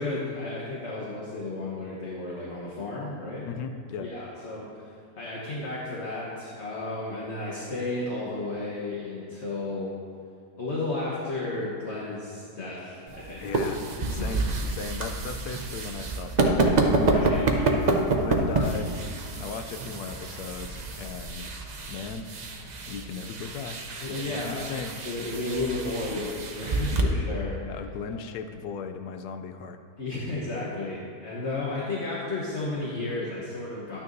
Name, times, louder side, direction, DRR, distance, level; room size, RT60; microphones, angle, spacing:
voice 1, 0.0-3.5 4.0-10.0 10.6-13.5 14.1-14.3 17.0-17.8 24.0-24.7 25.0-28.2 30.0-34.0, left 2 dB, 45° left, -5 dB, 1.3 m, -33 dB
voice 2, 3.5-4.1 13.4-16.9 17.3-17.5 17.8-19.0 19.4-21.6 21.9-22.3 22.9-23.8 24.1-24.9 26.9-27.1 27.7-29.8, left 5 dB, 75° left, 8 dB, 1.1 m, -37 dB
sound 1, 13.1-27.0, right 2 dB, 85° right, 0.3 m, -28 dB
11.5 x 9.4 x 2.6 m, 2.3 s
omnidirectional pair, 1.8 m